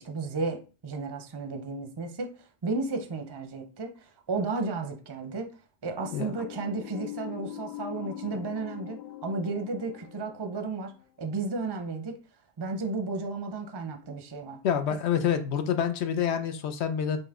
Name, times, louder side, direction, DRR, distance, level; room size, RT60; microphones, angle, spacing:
voice 1, 0.0-5.5 5.8-10.9 11.2-12.2 12.6-14.6, right 3 dB, 30° right, 5 dB, 0.5 m, -33 dB
sound 1, 6.0-11.3, left 14 dB, 55° left, 0.6 m, -42 dB
voice 2, 14.6-17.2, left 8 dB, 80° left, 8 dB, 0.9 m, -27 dB
5.3 x 2.2 x 3.5 m, 0.35 s
omnidirectional pair, 1.1 m